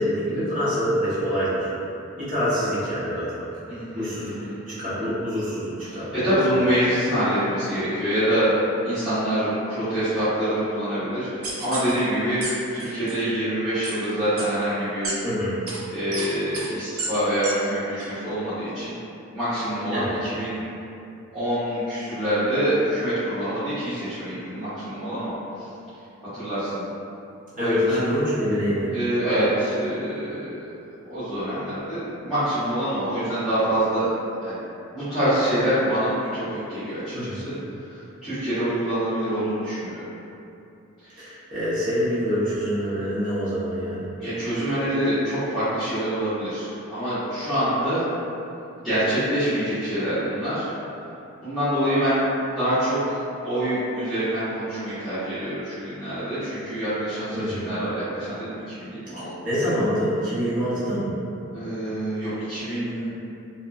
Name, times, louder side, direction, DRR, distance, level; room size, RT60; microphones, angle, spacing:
voice 1, 0.0-1.7 2.2-3.3 4.0-4.3 4.7-6.1 6.5-6.6 15.2-15.6 19.9-20.1 27.5-28.9 37.1-37.4 41.2-44.1 57.3-57.7 59.2-61.2, equal, 35° right, -12 dB, 0.9 m, -25 dB
voice 2, 3.7-4.8 5.9-12.4 12.7-15.1 15.9-18.9 19.3-20.6 21.3-25.3 26.3-26.8 27.6-28.1 28.9-30.5 31.0-34.1 34.4-34.5 34.9-37.5 37.9-40.0 41.0-41.3 44.2-48.1 48.8-50.7 51.4-52.3 52.5-59.3 59.6-59.7 61.5-63.1, right 1 dB, ahead, -20 dB, 0.9 m, -25 dB
sound 1, 11.4-11.9 12.4-12.5 12.8-13.1 13.8-13.9 14.4-14.5 15.0-15.1 15.7-15.8 16.1-16.3 16.5-16.7 17.0-17.1 17.4-17.5 18.0-18.1, right 3 dB, 80° right, 0.5 m, -30 dB
2.8 x 2.2 x 2.5 m, 2.7 s
head